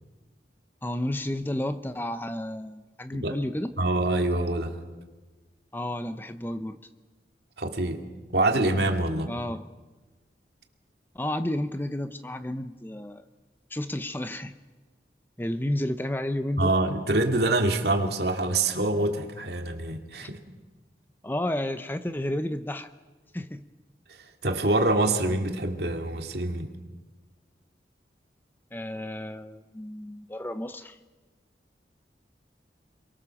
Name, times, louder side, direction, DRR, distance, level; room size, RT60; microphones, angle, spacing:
voice 1, 0.8-3.7 5.7-6.8 9.3-9.7 11.1-13.2 13.7-14.6 15.4-16.7 21.2-22.9 23.3-23.7 28.7-31.0, left 1 dB, 10° left, 10 dB, 0.7 m, -31 dB
voice 2, 3.8-4.8 7.6-8.0 8.3-9.3 16.6-20.4 24.4-26.7, right 2 dB, 65° right, 4 dB, 2.7 m, -25 dB
29.0 x 23.0 x 7.2 m, 1.3 s
head